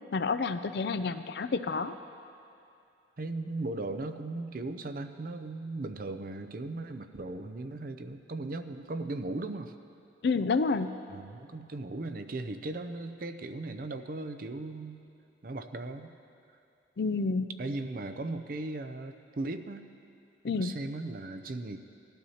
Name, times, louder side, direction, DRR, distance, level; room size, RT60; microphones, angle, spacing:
voice 1, 0.1-2.0 10.2-10.9 17.0-17.5 20.4-20.7, left 4 dB, 60° left, 11 dB, 0.4 m, -29 dB
voice 2, 3.2-9.7 11.1-15.0 15.4-16.1 17.6-19.8 20.6-21.8, right 2 dB, 50° right, 8 dB, 0.5 m, -37 dB
18.5 x 12.5 x 2.8 m, 2.5 s
head